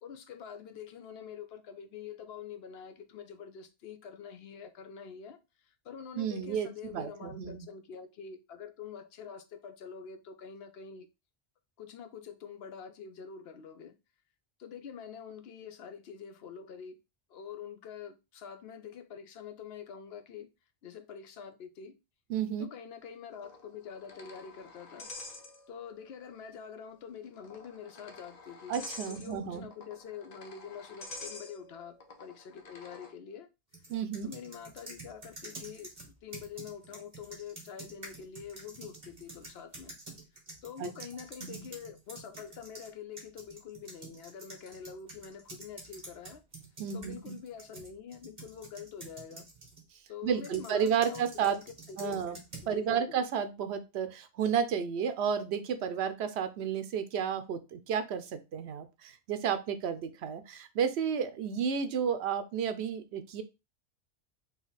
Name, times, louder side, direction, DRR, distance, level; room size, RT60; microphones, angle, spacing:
voice 1, 0.0-11.1 11.8-14.0 14.6-17.0 17.3-20.5 20.8-22.0 22.6-25.1 25.7-28.8 29.1-33.5 34.2-40.0 40.6-46.4 46.9-49.5 50.1-53.2, left 7 dB, 75° left, 0.9 m, -46 dB
voice 2, 6.2-7.7 22.3-22.7 28.7-29.7 33.9-34.3 40.8-40.9 41.4-41.7 46.8-47.4 50.2-51.6 52.0-52.4 52.7-63.4, right 7 dB, 90° right, 0.9 m, -32 dB
sound 1, 23.3-26.0 26.3-26.4 27.3-33.1, left 3 dB, 45° left, 0.8 m, -48 dB
sound 2, 33.7-42.9 43.2-49.8 50.4-52.7, right 2 dB, 45° right, 1.9 m, -49 dB
4.0 x 2.9 x 4.0 m
omnidirectional pair, 1.1 m